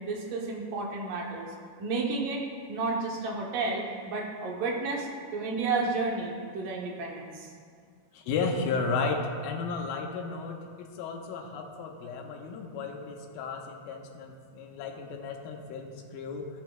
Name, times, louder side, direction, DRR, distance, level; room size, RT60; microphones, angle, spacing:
voice 1, 0.0-1.5 1.8-7.5, right 3 dB, 70° right, -1 dB, 2.4 m, -32 dB
voice 2, 8.1-16.5, left 4 dB, 85° left, 2 dB, 2.6 m, -34 dB
16.5 x 7.0 x 2.3 m, 2.1 s
omnidirectional pair, 4.2 m